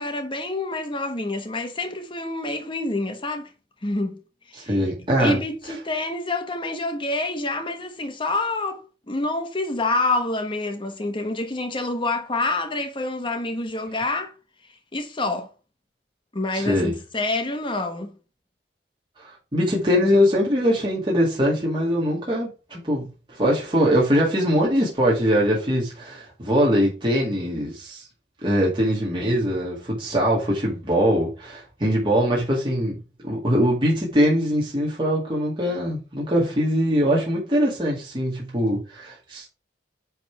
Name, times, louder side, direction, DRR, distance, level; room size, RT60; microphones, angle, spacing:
voice 1, 0.0-3.5 3.8-4.2 4.5-4.8 5.2-14.3 14.9-15.5 16.3-18.1, left 2 dB, 30° left, 1.1 m, -27 dB
voice 2, 4.6-5.4 16.5-16.9 19.2-23.0 23.3-28.1 28.4-39.5, equal, 30° right, 2.1 m, -22 dB
9.3 x 3.5 x 4.7 m
head